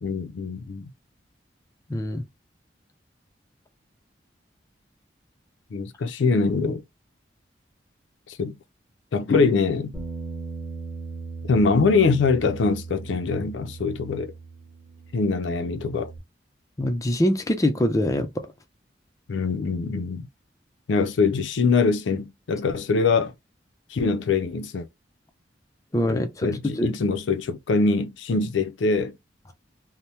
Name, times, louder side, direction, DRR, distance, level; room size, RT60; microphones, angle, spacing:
voice 1, 0.0-0.9 5.7-6.8 8.3-8.6 9.1-9.9 11.4-14.3 15.1-16.1 19.3-20.3 20.9-23.3 23.9-24.9 26.1-29.1, left 4 dB, 80° left, 0.4 m, -23 dB
voice 2, 1.9-2.2 16.8-18.3 25.9-26.5 26.7-27.0, left 1 dB, 15° left, 0.4 m, -23 dB
Bass guitar, 9.9-16.2, right 4 dB, 5° right, 1.0 m, -38 dB
2.7 x 2.0 x 3.2 m
head